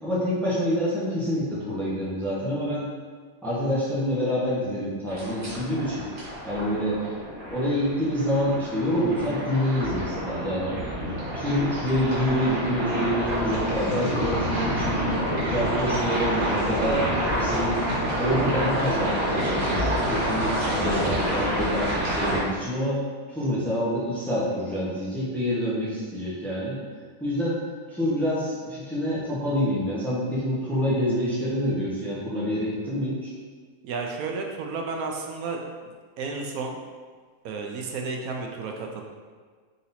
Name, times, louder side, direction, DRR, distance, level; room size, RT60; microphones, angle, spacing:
voice 1, 0.0-2.9 3.4-6.1 6.4-7.0 7.5-10.7 11.3-15.0 15.4-17.0 17.3-17.8 18.2-23.0 23.3-26.8 27.2-27.6 27.9-33.3, equal, ahead, -9 dB, 0.9 m, -27 dB
sound 1, 5.1-22.4, equal, 40° right, 1.5 m, -28 dB
voice 2, 33.8-35.6 36.2-36.8 37.4-39.0, right 4 dB, 80° right, 1 dB, 1.0 m, -32 dB
3.9 x 2.8 x 4.1 m, 1.6 s
omnidirectional pair, 1.5 m